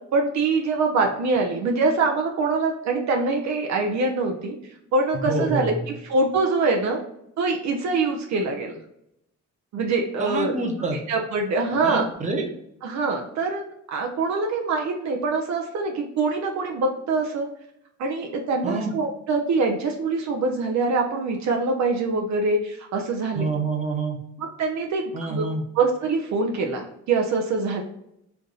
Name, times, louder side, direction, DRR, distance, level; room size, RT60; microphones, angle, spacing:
voice 1, 0.1-4.5 4.9-7.0 7.4-8.8 9.7-10.6 11.1-12.1 12.8-13.6 13.9-17.5 18.0-23.4 24.4-27.8, right 3 dB, 65° right, 2 dB, 0.6 m, -24 dB
voice 2, 5.1-5.8 10.2-11.0 11.8-12.5 18.6-18.9 23.3-24.2 25.1-25.6, right 3 dB, 25° right, 2 dB, 0.9 m, -27 dB
3.4 x 2.6 x 3.9 m, 0.77 s
cardioid pair, 90°, 30 cm